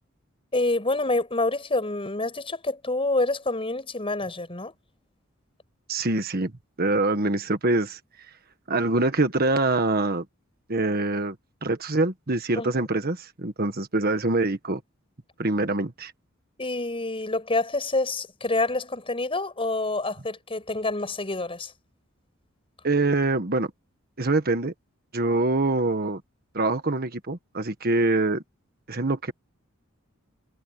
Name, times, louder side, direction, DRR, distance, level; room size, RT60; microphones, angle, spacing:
voice 1, 0.5-4.7 12.6-12.9 16.6-21.7, left 2 dB, 25° left, 5.7 m, -27 dB
voice 2, 5.9-6.5 6.8-8.0 8.7-10.2 10.7-11.4 11.6-14.8 15.4-16.1 22.8-23.7 24.2-24.7 25.1-26.2 26.5-28.4 28.9-29.3, right 2 dB, 45° right, 1.5 m, -24 dB
head